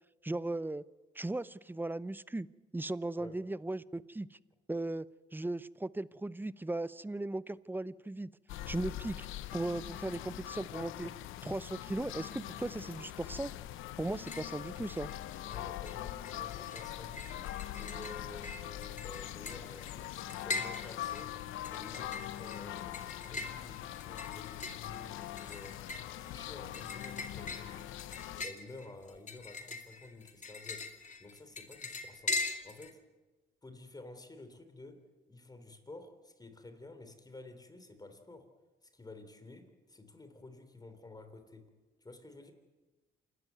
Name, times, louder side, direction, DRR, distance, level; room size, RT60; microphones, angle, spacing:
voice 1, 0.2-0.8 1.1-2.5 2.7-4.4 4.7-5.1 5.3-8.3 8.7-9.3 9.5-11.1 11.4-13.5 14.0-15.1, right 2 dB, 10° right, 18 dB, 0.6 m, -37 dB
sound 1, 8.5-28.4, left 13 dB, 90° left, 0.8 m, -42 dB
sound 2, 14.0-14.6 14.9-15.6 15.9-32.9, left 3 dB, 40° left, 2.4 m, -42 dB
voice 2, 15.5-17.5 17.8-21.4 21.7-25.8 26.1-27.9 28.4-33.0 33.6-38.5 38.8-41.7 42.0-42.5, left 2 dB, 20° left, 8 dB, 3.6 m, -51 dB
27.5 x 13.0 x 9.4 m, 1.2 s
cardioid pair, 90°, 20 cm